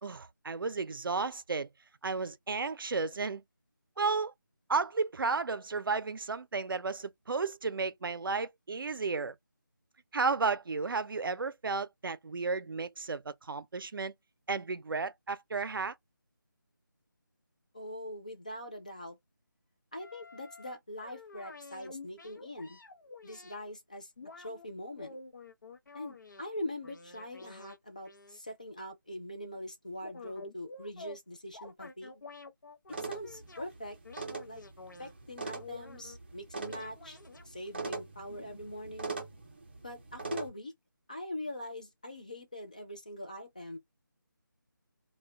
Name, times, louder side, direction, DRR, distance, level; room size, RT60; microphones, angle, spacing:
voice 1, 0.0-1.7 2.0-3.4 4.0-4.3 4.7-9.3 10.1-14.1 14.5-15.9, right 4 dB, 85° right, 0.4 m, -33 dB
voice 2, 17.7-19.2 19.9-22.8 23.2-24.1 24.4-25.2 25.9-32.2 33.0-34.0 34.5-34.6 35.0-37.2 37.5-39.2 39.8-40.7 41.1-43.8, left 1 dB, 20° left, 0.4 m, -42 dB
sound 1, 20.0-23.6 24.2-24.7 25.0-26.4 26.8-27.8 28.0-28.4 29.9-31.2 31.5-33.7 34.0-35.1 35.6-36.2 36.7-37.9 38.2-38.3, left 3 dB, 65° left, 0.6 m, -49 dB
sound 2, 32.9-40.5, right 4 dB, 30° right, 0.5 m, -42 dB
2.2 x 2.1 x 3.6 m
figure-of-eight pair, 175°, 11 cm